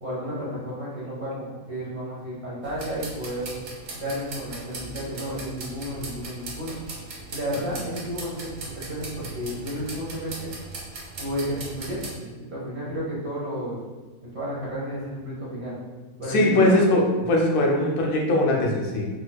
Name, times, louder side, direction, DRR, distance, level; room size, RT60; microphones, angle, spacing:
voice 1, 0.0-3.5 3.9-6.8 7.3-8.5 8.8-10.5 11.2-13.8 14.2-15.7 16.2-16.8, equal, 35° right, -7 dB, 1.0 m, -32 dB
sound 1, 2.6-12.1, right 3 dB, 65° right, 1.0 m, -39 dB
voice 2, 16.3-19.1, left 1 dB, 85° left, -1 dB, 1.2 m, -21 dB
4.1 x 2.4 x 2.2 m, 1.3 s
omnidirectional pair, 1.6 m